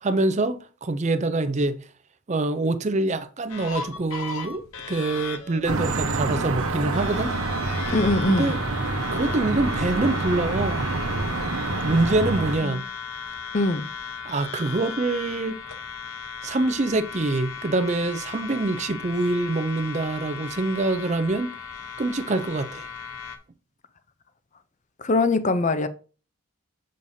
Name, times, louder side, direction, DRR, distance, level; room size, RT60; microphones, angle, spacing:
voice 1, 0.0-1.8 2.3-7.3 8.3-8.6 9.1-10.9 11.8-12.8 14.2-15.6 16.4-21.6 22.0-22.9, right 2 dB, 30° right, 0.4 m, -25 dB
sound 1, 3.5-23.4, left 6 dB, 80° left, 1.0 m, -37 dB
sound 2, 5.7-12.6, right 3 dB, 85° right, 0.9 m, -27 dB
voice 2, 7.9-8.5 12.6-12.8 13.5-13.9 25.0-25.9, left 2 dB, 35° left, 0.5 m, -22 dB
7.1 x 6.3 x 2.7 m
head